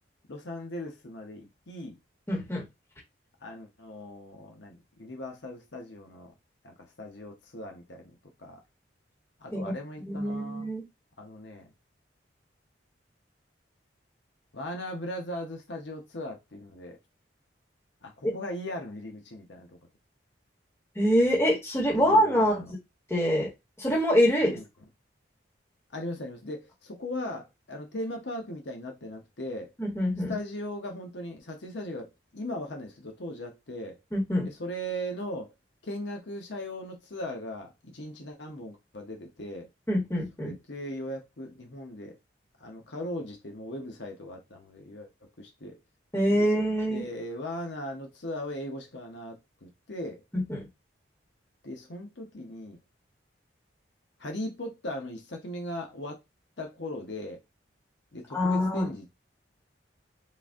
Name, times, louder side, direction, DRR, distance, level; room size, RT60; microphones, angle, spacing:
voice 1, 0.3-2.0 3.4-6.3 6.6-8.1 8.4-8.6 9.4-10.7 11.2-11.7 14.5-17.0 18.0-19.8 22.0-22.7 24.4-24.6 25.9-29.7 30.3-34.0 34.4-35.5 35.8-39.7 40.4-42.2 42.6-45.1 45.4-45.7 46.4-46.5 46.9-50.2 51.6-52.8 54.2-56.2 56.6-57.4 58.1-59.0, left 1 dB, 70° left, 1.0 m, -38 dB
voice 2, 2.3-2.6 9.5-9.7 10.0-10.8 20.9-22.8 23.1-23.5 23.8-24.6 29.8-30.3 34.1-34.5 39.9-40.5 46.1-47.0 50.3-50.6 58.3-58.9, equal, 15° left, 1.5 m, -25 dB
3.9 x 2.6 x 3.6 m
head